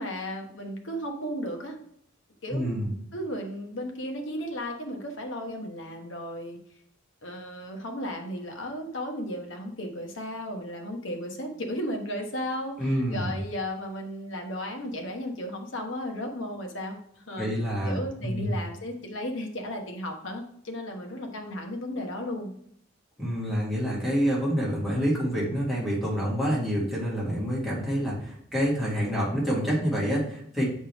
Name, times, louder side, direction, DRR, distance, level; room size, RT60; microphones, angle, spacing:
voice 1, 0.0-1.8 2.4-2.8 3.1-6.6 7.2-17.5 17.8-22.5, equal, 65° left, 3 dB, 1.1 m, -35 dB
voice 2, 2.5-2.9 12.8-13.4 17.4-18.6 23.2-30.6, equal, ahead, -7 dB, 2.1 m, -27 dB
8.1 x 4.4 x 3.4 m, 0.69 s
head